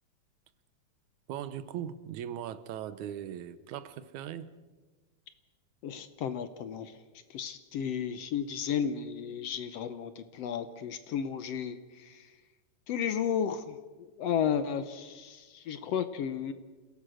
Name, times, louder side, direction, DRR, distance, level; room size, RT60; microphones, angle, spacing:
voice 1, 1.3-4.5, right 10 dB, 80° right, 14 dB, 2.2 m, -39 dB
voice 2, 5.8-6.9 7.3-12.2 12.9-16.5, left 8 dB, 70° left, 11 dB, 1.7 m, -33 dB
27.5 x 17.0 x 6.4 m, 1.3 s
omnidirectional pair, 3.4 m